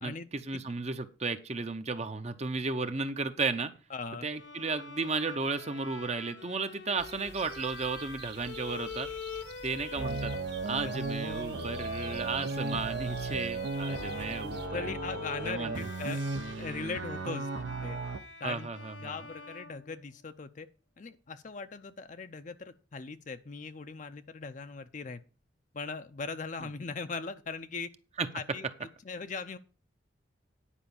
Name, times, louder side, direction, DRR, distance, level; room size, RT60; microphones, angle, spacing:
voice 1, 0.0-3.7 4.2-9.1 9.6-10.3 10.6-14.9 15.5-15.9 18.4-19.1 28.2-28.3, right 4 dB, 35° right, 9 dB, 0.7 m, -34 dB
voice 2, 3.9-4.3 10.8-10.9 12.3-12.5 14.4-16.2 16.6-18.0 18.4-18.7 19.0-20.7 21.0-25.2 25.7-27.9 28.3-29.6, left 4 dB, 40° left, 9 dB, 0.5 m, -40 dB
Bowed string instrument, 4.3-20.4, left 4 dB, 65° left, 1.2 m, -45 dB
sound 1, 7.0-14.7, right 5 dB, 60° right, 1.6 m, -49 dB
sound 2, 10.0-18.2, right 3 dB, 75° right, 0.8 m, -36 dB
10.0 x 5.1 x 7.0 m, 0.35 s
head